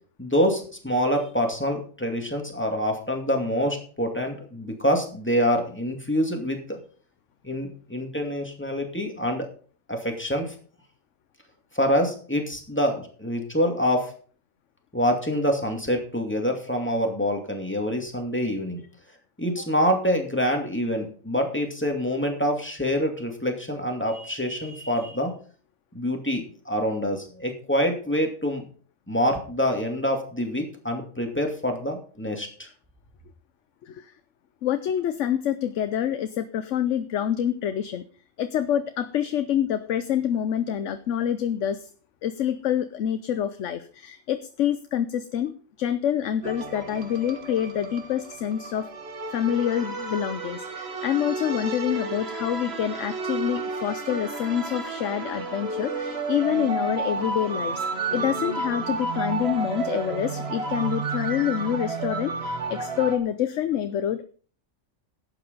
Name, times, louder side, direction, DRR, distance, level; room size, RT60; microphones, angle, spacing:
voice 1, 0.2-6.8 7.4-9.5 9.9-10.5 11.7-14.1 14.9-18.8 19.4-25.3 25.9-28.6 29.1-32.7, equal, 10° left, 2 dB, 2.4 m, -26 dB
voice 2, 34.6-38.0 38.4-41.9 42.2-48.9 49.3-57.8 58.1-64.2, left 10 dB, 65° left, 10 dB, 1.0 m, -27 dB
sound 1, 46.4-63.2, right 3 dB, 50° right, 1.7 m, -31 dB
11.5 x 8.7 x 5.3 m, 0.42 s
omnidirectional pair, 1.4 m